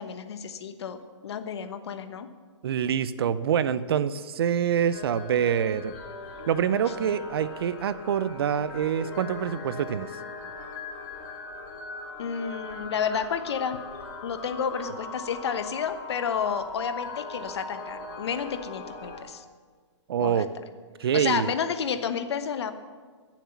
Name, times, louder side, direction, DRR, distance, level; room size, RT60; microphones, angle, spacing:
voice 1, 0.0-2.3 12.2-13.8 14.2-19.4 20.2-20.4 21.1-22.7, left 7 dB, 60° left, 10 dB, 1.1 m, -31 dB
voice 2, 2.6-5.9 6.5-10.1 20.1-20.5 21.0-21.5, right 8 dB, 55° right, 15 dB, 0.6 m, -26 dB
sound 1, 4.9-19.2, left 3 dB, 35° left, 3.3 m, -40 dB
15.5 x 7.4 x 7.1 m, 1.5 s
hypercardioid pair, 150°, 15 cm